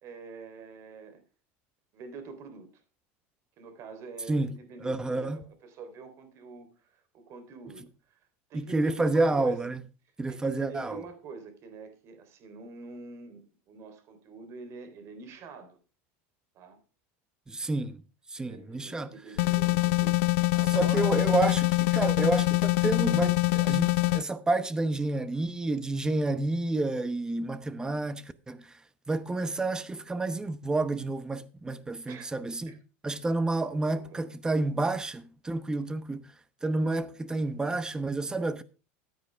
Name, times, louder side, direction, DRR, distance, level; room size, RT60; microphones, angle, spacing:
voice 1, 0.0-1.2 1.9-2.7 3.6-9.7 10.3-15.8 16.5-16.8 18.4-21.2 32.1-32.3 32.7-32.8 33.9-34.2, right 4 dB, 45° right, 3.5 m, -46 dB
voice 2, 4.8-5.4 8.5-9.8 10.2-11.0 17.5-18.0 18.3-19.1 20.7-28.6 29.1-32.8 33.0-36.2 36.6-38.6, right 2 dB, 10° right, 0.9 m, -29 dB
sound 1, 19.4-24.2, left 23 dB, 80° left, 0.5 m, -24 dB
15.0 x 9.2 x 3.4 m
supercardioid pair, 135°, 7 cm